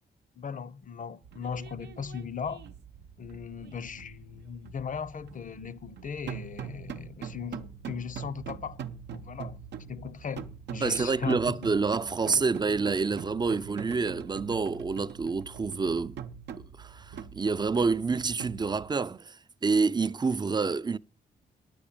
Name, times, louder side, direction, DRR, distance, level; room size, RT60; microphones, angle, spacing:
voice 1, 0.3-2.7 3.2-8.8 9.1-9.6 9.9-11.6, left 6 dB, 50° left, 0.8 m, -38 dB
sound 1, 1.2-19.0, right 7 dB, 80° right, 0.7 m, -43 dB
voice 2, 10.8-16.2 16.8-21.0, right 4 dB, 25° right, 0.4 m, -28 dB
9.6 x 6.2 x 8.7 m
cardioid pair, 65°, 18 cm